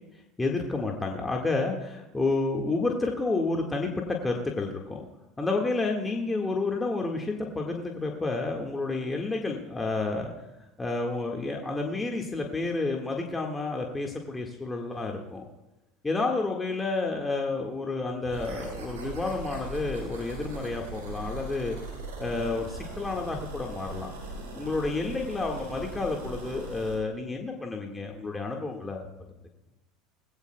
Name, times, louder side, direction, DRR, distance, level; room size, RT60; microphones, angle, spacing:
voice 1, 0.4-3.9 4.2-5.0 5.4-10.3 10.8-15.4 16.0-21.8 22.2-24.1 24.5-29.1, left 3 dB, 15° left, 1 dB, 1.8 m, -30 dB
sound 1, 18.2-27.0, right 2 dB, 80° right, 3.6 m, -39 dB
20.0 x 16.5 x 2.3 m, 1.0 s
hypercardioid pair, 75°, 0 cm